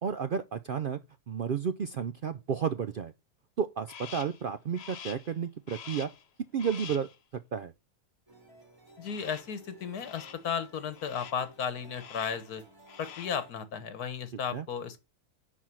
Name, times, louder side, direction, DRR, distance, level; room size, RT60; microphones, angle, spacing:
voice 1, 0.0-1.0 1.3-3.1 3.6-6.1 6.5-7.1 7.5-7.7 14.5-14.6, right 7 dB, 75° right, 0.4 m, -32 dB
Crow, 3.9-4.4 4.8-5.3 5.7-6.3 6.6-7.2 9.1-9.6 10.0-10.5 10.9-11.5 11.9-12.5 12.8-13.4, left 8 dB, 55° left, 0.9 m, -46 dB
sound 1, 8.3-13.5, right 2 dB, 15° right, 3.3 m, -56 dB
voice 2, 9.0-12.6 13.0-15.0, left 7 dB, 80° left, 1.7 m, -34 dB
10.0 x 4.6 x 5.8 m
omnidirectional pair, 1.6 m